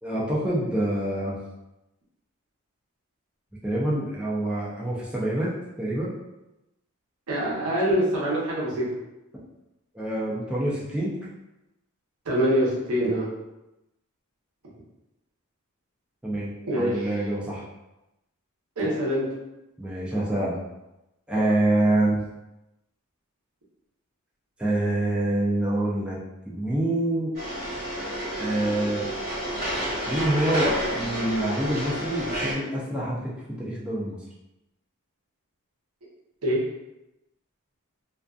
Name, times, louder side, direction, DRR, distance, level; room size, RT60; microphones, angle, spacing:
voice 1, 0.0-1.4 3.6-5.5 5.8-6.1 9.9-11.1 16.2-17.6 19.8-20.6 21.3-22.2 24.6-26.2 26.5-27.3 28.4-29.1 30.1-34.2, right 1 dB, 5° right, -7 dB, 0.4 m, -26 dB
voice 2, 7.3-8.8 12.3-13.3 16.7-17.0 18.8-19.2 36.4-36.6, equal, 80° right, -6 dB, 0.9 m, -24 dB
sound 1, 27.3-32.5, equal, 45° right, 1.2 m, -30 dB
2.4 x 2.3 x 2.3 m, 0.94 s
head